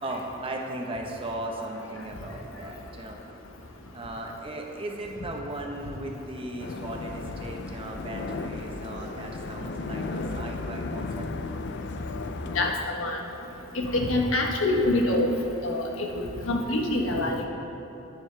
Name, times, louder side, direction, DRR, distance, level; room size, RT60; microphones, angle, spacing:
voice 1, 0.0-3.2 3.9-11.3, right 1 dB, 25° right, 1 dB, 1.1 m, -37 dB
sound 1, 6.6-12.7, left 3 dB, 60° left, 0.5 m, -35 dB
voice 2, 12.5-13.2 13.7-15.3 15.6-17.5, left 2 dB, 80° left, 1 dB, 1.3 m, -25 dB
20.0 x 7.1 x 3.4 m, 2.9 s
head